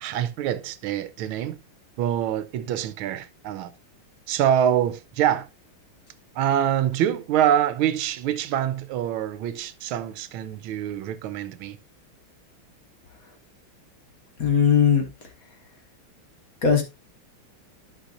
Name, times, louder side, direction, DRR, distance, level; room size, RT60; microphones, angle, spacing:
voice 1, 0.0-1.6 2.0-3.7 4.3-5.5 6.3-11.8, right 10 dB, 85° right, 1.4 m, -25 dB
voice 2, 14.4-15.1 16.6-16.8, left 7 dB, 45° left, 1.6 m, -18 dB
11.5 x 5.9 x 2.5 m
omnidirectional pair, 2.3 m